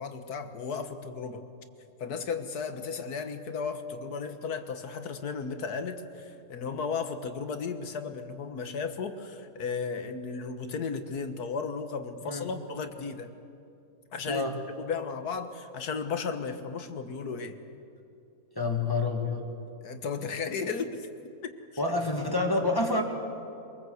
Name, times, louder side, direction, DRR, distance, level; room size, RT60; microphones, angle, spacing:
voice 1, 0.0-1.4 2.0-13.3 14.1-14.4 14.8-17.6 19.8-21.1 21.4-21.6, left 5 dB, 85° left, 8 dB, 1.8 m, -34 dB
voice 2, 14.3-14.6 18.5-19.5 21.8-23.0, left 2 dB, 15° left, 2 dB, 2.0 m, -28 dB
23.0 x 23.0 x 7.9 m, 2.7 s
omnidirectional pair, 1.6 m